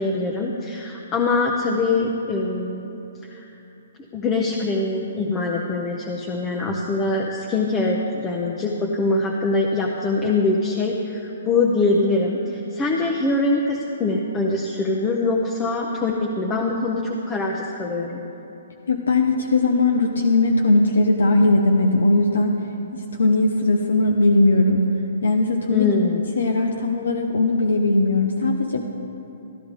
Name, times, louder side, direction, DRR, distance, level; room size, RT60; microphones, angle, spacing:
voice 1, 0.0-2.9 3.3-3.4 4.1-18.2 25.7-26.2, left 3 dB, 20° left, -1 dB, 0.8 m, -23 dB
voice 2, 18.9-22.6 22.9-24.8 25.2-25.9 26.4-28.8, left 2 dB, 80° left, 2 dB, 0.8 m, -19 dB
14.0 x 11.0 x 3.7 m, 2.9 s
hypercardioid pair, 140°, 0 cm